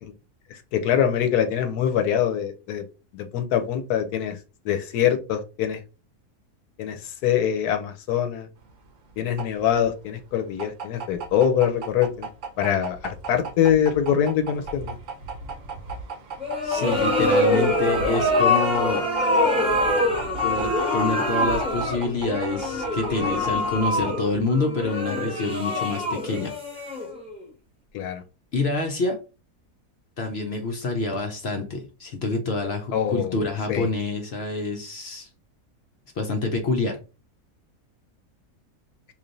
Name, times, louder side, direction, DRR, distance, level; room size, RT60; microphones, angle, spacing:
voice 1, 0.5-2.8 3.1-4.4 4.6-5.8 6.8-8.5 9.2-12.3 12.6-14.9 27.9-28.2 32.9-33.4 33.7-33.9, left 9 dB, 80° left, 7 dB, 1.1 m, -24 dB
sound 1, 8.6-24.6, right 4 dB, 65° right, 1.1 m, -37 dB
sound 2, 16.4-27.4, left 1 dB, 5° right, 0.8 m, -24 dB
voice 2, 16.6-19.1 20.4-26.5 28.5-29.2 30.2-35.3 36.2-37.0, left 3 dB, 60° left, 4 dB, 0.7 m, -27 dB
3.2 x 2.5 x 3.8 m, 0.31 s
omnidirectional pair, 1.7 m